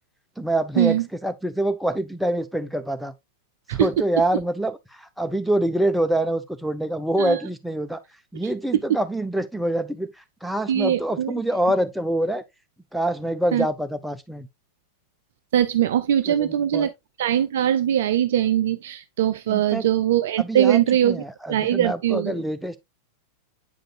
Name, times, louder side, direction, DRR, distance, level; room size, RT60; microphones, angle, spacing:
voice 1, 0.4-3.1 3.7-8.0 8.3-10.1 10.4-12.4 12.9-14.5 16.2-16.9 19.5-19.9 20.4-22.8, right 1 dB, ahead, 0.6 m, -25 dB
voice 2, 10.7-11.3 13.5-13.7 15.5-16.9 17.2-22.4, right 11 dB, 55° right, 0.4 m, -21 dB
8.4 x 5.2 x 2.3 m
figure-of-eight pair, 90°, 0 cm